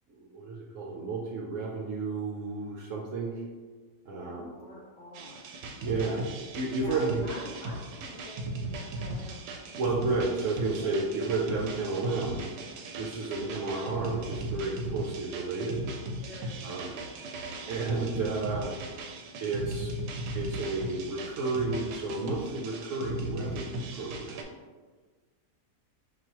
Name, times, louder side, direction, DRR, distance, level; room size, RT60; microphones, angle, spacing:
voice 1, 0.1-3.3 4.1-4.5 5.8-6.3 6.5-7.1 9.8-12.4 13.0-15.8 16.6-16.9 17.7-18.7 19.4-19.9 20.3-24.5, right 3 dB, 65° right, -2 dB, 0.8 m, -32 dB
voice 2, 4.1-5.5 5.8-6.4 6.7-9.4 10.8-11.4 16.2-17.4 18.7-18.9, left 1 dB, 65° left, -3 dB, 0.8 m, -47 dB
sound 1, 5.1-24.4, right 1 dB, 85° right, 1.2 m, -37 dB
5.6 x 2.6 x 2.8 m, 1.4 s
omnidirectional pair, 1.7 m